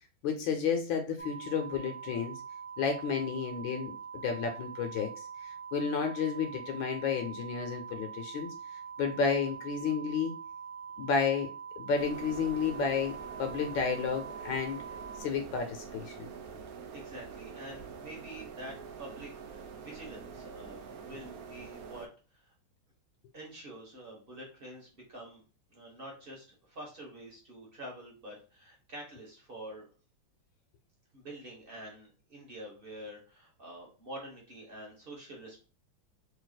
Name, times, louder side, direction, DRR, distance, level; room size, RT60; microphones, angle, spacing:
voice 1, 0.2-2.4 2.8-5.1 5.4-8.5 9.0-10.3 11.0-11.5 11.8-13.1 13.4-14.8 15.2-16.3, left 6 dB, 75° left, 4 dB, 1.3 m, -31 dB
sound 1, 1.2-15.2, right 6 dB, 30° left, 0.6 m, -44 dB
sound 2, 11.9-22.1, right 6 dB, 85° right, 0.7 m, -46 dB
voice 2, 16.9-22.5 23.3-25.4 25.7-29.9 31.1-35.6, right 1 dB, 35° right, -1 dB, 1.1 m, -47 dB
3.3 x 2.7 x 4.0 m, 0.36 s
omnidirectional pair, 2.2 m